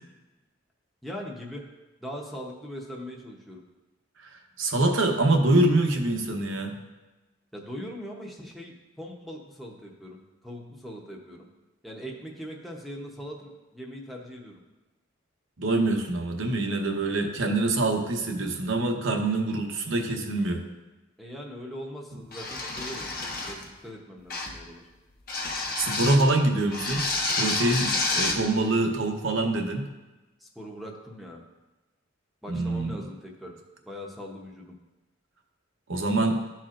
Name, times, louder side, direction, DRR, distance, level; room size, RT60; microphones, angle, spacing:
voice 1, 1.0-1.7 2.0-3.6 7.5-11.5 11.8-14.6 21.2-24.8 30.4-31.4 32.4-33.6 33.9-34.8, equal, ahead, -2 dB, 0.8 m, -41 dB
voice 2, 4.2-6.7 15.6-20.6 25.8-27.0 27.3-29.9 32.5-33.0 35.9-36.4, right 2 dB, 75° right, 3 dB, 0.9 m, -25 dB
sound 1, 22.3-23.7 24.3-24.6 25.3-26.3 26.7-28.4, left 2 dB, 50° left, 1.1 m, -29 dB
13.0 x 4.3 x 2.5 m, 1.1 s
head